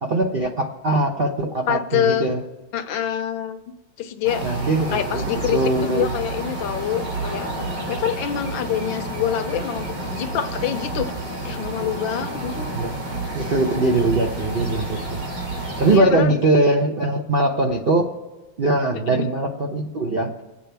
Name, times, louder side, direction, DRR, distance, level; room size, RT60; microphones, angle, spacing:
voice 1, 0.0-2.4 4.4-6.1 12.7-12.9 13.3-15.2 15.8-18.1 18.6-20.4, right 2 dB, 55° right, 1 dB, 0.6 m, -21 dB
voice 2, 1.7-2.3 2.7-3.6 4.0-4.5 4.9-7.5 7.9-11.1 11.4-12.6 15.8-16.4 18.9-19.3, left 9 dB, 75° left, 9 dB, 1.4 m, -25 dB
sound 1, 4.2-16.0, right 2 dB, 80° right, 3.9 m, -29 dB
25.5 x 8.6 x 3.4 m, 1.1 s
omnidirectional pair, 2.2 m